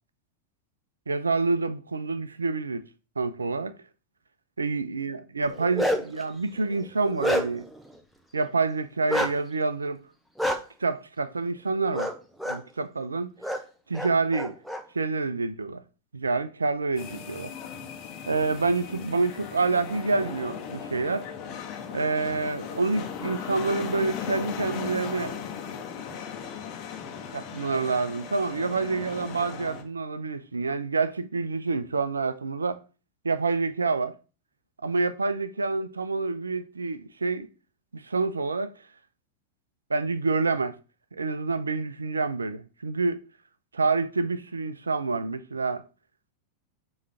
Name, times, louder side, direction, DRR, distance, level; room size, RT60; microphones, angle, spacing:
voice 1, 1.1-2.8 3.2-3.7 4.6-7.7 8.3-10.0 10.8-12.1 12.4-13.3 13.9-14.6 14.9-15.8 16.1-17.5 18.3-21.3 21.9-25.4 27.3-32.8 33.2-34.1 34.8-37.5 37.9-38.7 39.9-40.8 41.1-43.2 43.7-45.8, right 3 dB, 75° right, 0.6 m, -27 dB
Bark, 5.4-6.2 6.7-7.7 9.1-9.3 10.4-10.6 11.9-12.1 12.4-12.6 13.4-13.6 13.9-14.8, equal, ahead, 1.0 m, -27 dB
sound 1, 17.0-29.8, left 7 dB, 40° left, 1.3 m, -37 dB
7.3 x 3.2 x 5.7 m
figure-of-eight pair, 90°, 0 cm